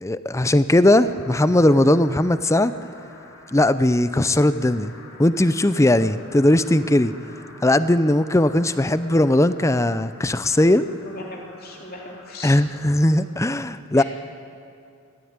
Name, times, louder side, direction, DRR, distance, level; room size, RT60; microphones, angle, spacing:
voice 1, 0.0-2.7 3.5-4.9 5.2-7.1 7.6-10.8 12.4-14.0, left 1 dB, 15° left, 14 dB, 0.5 m, -18 dB
sound 1, 1.0-13.1, left 2 dB, 85° left, 4.7 m, -47 dB
voice 2, 11.0-12.6 13.9-14.0, left 2 dB, 45° left, 0 dB, 3.3 m, -38 dB
23.0 x 16.5 x 9.5 m, 2.5 s
head